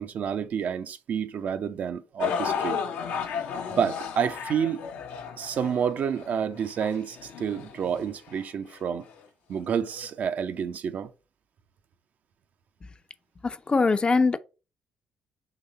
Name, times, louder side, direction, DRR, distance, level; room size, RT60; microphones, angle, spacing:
voice 1, 0.0-2.8 3.7-4.8 5.4-9.0 9.5-11.1, right 7 dB, 60° right, 0.5 m, -29 dB
sound 1, 2.2-8.4 9.1-9.2 10.0-10.1, left 7 dB, 70° left, 0.7 m, -33 dB
voice 2, 13.4-14.4, left 4 dB, 30° left, 0.5 m, -22 dB
4.0 x 3.1 x 4.2 m
hypercardioid pair, 45°, 3 cm